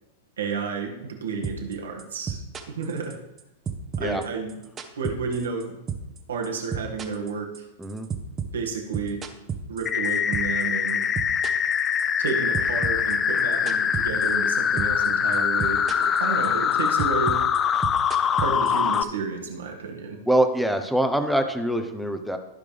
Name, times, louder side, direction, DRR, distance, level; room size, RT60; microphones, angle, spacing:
voice 1, 0.4-2.4 2.7-3.2 4.0-4.6 5.0-5.8 6.3-7.7 8.5-9.3 9.7-11.1 12.2-17.4 18.4-20.2, right 5 dB, 75° right, 1 dB, 1.8 m, -31 dB
sound 1, 1.4-1.7 2.0-3.4 3.7-5.6 5.9-6.2 6.4-10.6 10.9-12.3 12.5-14.5 14.8-15.1 15.3-16.2 16.4-19.1, right 7 dB, 25° right, 1.1 m, -32 dB
sound 2, 9.9-19.0, left 7 dB, 25° left, 0.4 m, -23 dB
voice 2, 20.3-22.4, right 1 dB, ahead, 7 dB, 0.9 m, -24 dB
14.5 x 5.0 x 3.4 m, 0.95 s
hypercardioid pair, 100°, 0 cm